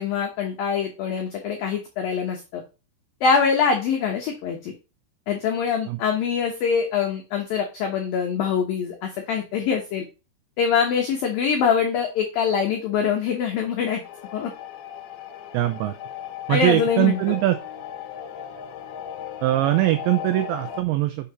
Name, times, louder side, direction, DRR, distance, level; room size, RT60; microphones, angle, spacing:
voice 1, 0.0-2.6 3.2-4.7 5.3-10.1 10.6-14.0 14.3-14.5 16.5-17.2, left 6 dB, 90° left, 2 dB, 2.0 m, -24 dB
sound 1, 14.0-20.8, left 9 dB, 70° left, 3.0 m, -37 dB
voice 2, 15.5-16.0 16.5-17.6 19.4-21.3, right 15 dB, 90° right, 9 dB, 2.5 m, -22 dB
7.1 x 4.8 x 5.5 m, 0.30 s
omnidirectional pair, 5.8 m